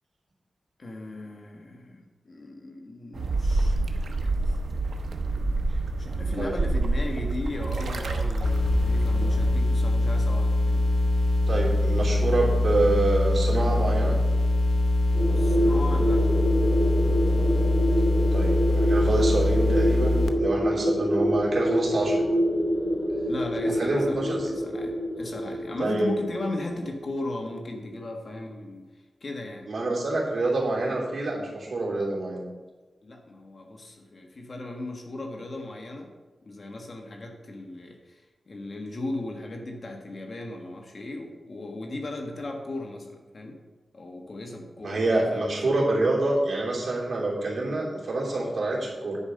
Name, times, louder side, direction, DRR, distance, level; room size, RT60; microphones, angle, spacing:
voice 1, 0.8-4.5 6.0-10.9 15.4-16.3 23.3-28.8 29.2-29.7 33.0-36.1 36.4-43.6 43.9-45.0 45.3-45.8, left 2 dB, 50° left, 2 dB, 1.5 m, -37 dB
sound 1, 3.1-9.6, right 2 dB, 85° right, 0.9 m, -28 dB
sound 2, 8.4-20.3, left 1 dB, 80° left, 0.7 m, -23 dB
voice 2, 11.5-14.1 18.3-22.3 23.8-24.5 25.8-26.1 29.7-32.4 44.8-49.2, right 2 dB, 65° right, -4 dB, 3.2 m, -26 dB
sound 3, 15.1-27.0, equal, 35° left, 3.6 m, -27 dB
9.7 x 5.0 x 6.6 m, 1.3 s
wide cardioid pair, 80°, 0 cm